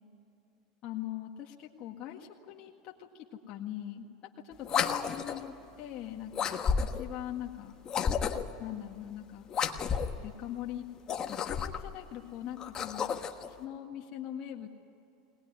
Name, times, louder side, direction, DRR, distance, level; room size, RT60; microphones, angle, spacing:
voice 1, 0.8-4.1 4.4-6.6 6.9-7.8 8.6-9.5 10.2-10.8 11.3-13.1 13.5-14.7, left 11 dB, 45° left, 0 dB, 1.8 m, -41 dB
sound 1, 4.6-5.5 6.3-7.1 7.8-8.6 9.5-10.2 11.0-11.9 12.6-13.5, left 6 dB, 30° left, 1.4 m, -31 dB
21.5 x 19.5 x 9.7 m, 2.6 s
supercardioid pair, 125°, 2 cm